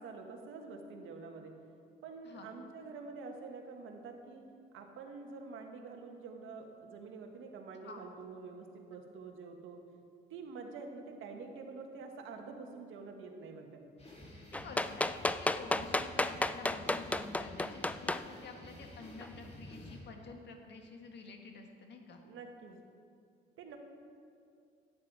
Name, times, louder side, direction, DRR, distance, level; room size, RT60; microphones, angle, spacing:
voice 1, 0.0-1.5 2.0-4.4 4.7-9.8 10.3-13.8 22.2-22.8 23.6-23.8, right 4 dB, 80° right, 3 dB, 1.4 m, -47 dB
sound 1, 14.0-20.0, left 1 dB, 30° left, 2.7 m, -51 dB
voice 2, 14.3-22.2, left 4 dB, 60° left, 4 dB, 1.5 m, -49 dB
sound 2, 14.5-18.2 19.2-19.3, left 2 dB, 5° left, 0.3 m, -32 dB
12.0 x 9.6 x 4.8 m, 2.4 s
cardioid pair, 90°, 20 cm